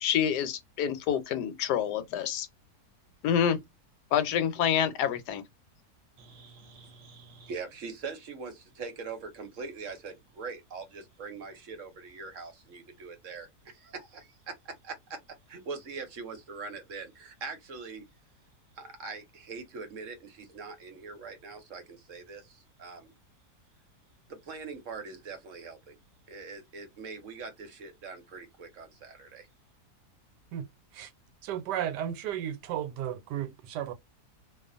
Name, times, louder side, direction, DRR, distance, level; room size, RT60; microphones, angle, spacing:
voice 1, 0.0-2.5 3.2-3.6 4.1-5.4, left 9 dB, 80° left, 1.2 m, -27 dB
voice 2, 6.2-15.2 15.5-18.0 18.8-23.1 24.3-25.9 26.3-29.5, right 4 dB, 60° right, 0.9 m, -42 dB
voice 3, 31.4-33.9, right 10 dB, 90° right, 1.2 m, -34 dB
2.5 x 2.4 x 2.4 m
omnidirectional pair, 1.8 m